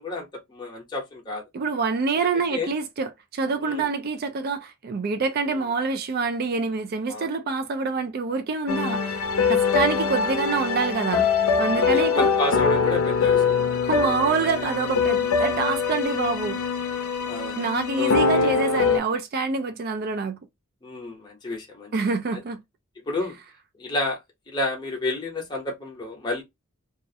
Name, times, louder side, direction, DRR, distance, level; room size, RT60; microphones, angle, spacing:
voice 1, 0.0-1.4 2.3-2.7 3.6-3.9 7.1-7.3 9.7-10.1 11.7-13.6 17.3-17.6 18.0-18.5 20.8-21.9 22.3-22.4 23.1-23.4 23.8-24.2 24.5-26.4, left 2 dB, 20° left, 0.6 m, -30 dB
voice 2, 1.5-11.3 11.6-12.3 13.8-16.6 17.6-20.4 21.9-22.6, right 4 dB, 45° right, 0.3 m, -26 dB
sound 1, 8.7-19.0, left 5 dB, 80° left, 0.5 m, -23 dB
2.3 x 2.0 x 2.6 m
head